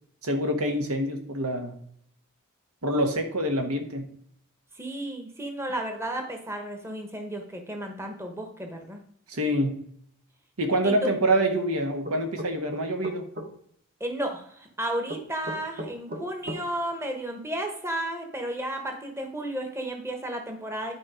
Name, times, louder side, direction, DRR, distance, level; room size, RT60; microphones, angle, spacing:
voice 1, 0.2-1.7 2.8-4.1 9.3-9.8 10.6-13.3, right 1 dB, 80° right, 5 dB, 1.5 m, -26 dB
voice 2, 4.7-9.0 10.8-11.1 14.0-20.9, right 1 dB, 10° right, 3 dB, 1.0 m, -33 dB
sound 1, 12.0-13.5 15.1-16.6, right 1 dB, 40° right, 1.2 m, -36 dB
11.0 x 4.6 x 5.0 m, 0.66 s
head